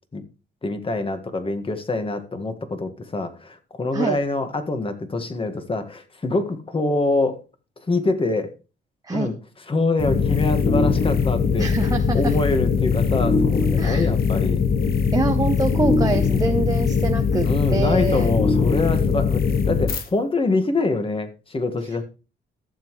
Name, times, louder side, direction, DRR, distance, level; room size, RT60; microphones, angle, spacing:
voice 1, 0.6-7.4 7.9-8.5 9.1-9.3 9.7-11.7 12.1-14.6 17.4-22.0, left 2 dB, 25° left, 8 dB, 1.7 m, -25 dB
sound 1, 10.0-20.0, left 5 dB, 50° left, 1.4 m, -21 dB
voice 2, 11.6-12.3 13.8-14.1 15.1-17.5 17.7-18.3, right 3 dB, 20° right, 4 dB, 0.9 m, -25 dB
14.5 x 7.3 x 3.2 m, 0.34 s
cardioid pair, 90°, 20 cm